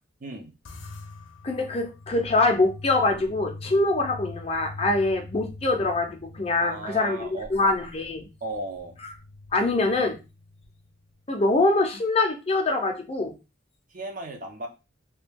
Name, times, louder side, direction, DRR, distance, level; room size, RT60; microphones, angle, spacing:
voice 1, 0.2-0.5 6.6-7.5 8.4-9.0 13.9-14.7, right 2 dB, 45° right, 2 dB, 0.6 m, -35 dB
sound 1, 0.7-11.3, left 2 dB, 80° left, 0.6 m, -44 dB
voice 2, 1.4-8.3 9.5-10.2 11.3-13.3, left 2 dB, 30° left, 3 dB, 0.5 m, -24 dB
2.9 x 2.3 x 3.4 m, 0.29 s
head